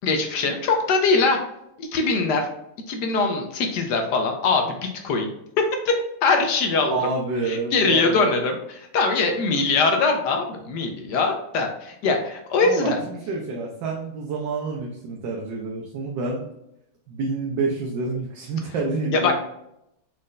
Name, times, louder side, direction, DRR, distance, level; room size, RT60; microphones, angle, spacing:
voice 1, 0.0-1.4 1.8-2.5 2.9-4.8 5.0-5.3 5.8-5.9 6.2-7.0 7.5-13.0 19.1-19.3, left 4 dB, 70° left, 4 dB, 1.1 m, -22 dB
voice 2, 6.9-8.3 12.6-16.5 17.1-19.3, right 3 dB, 70° right, -1 dB, 1.3 m, -28 dB
4.2 x 4.2 x 2.5 m, 0.80 s
omnidirectional pair, 2.1 m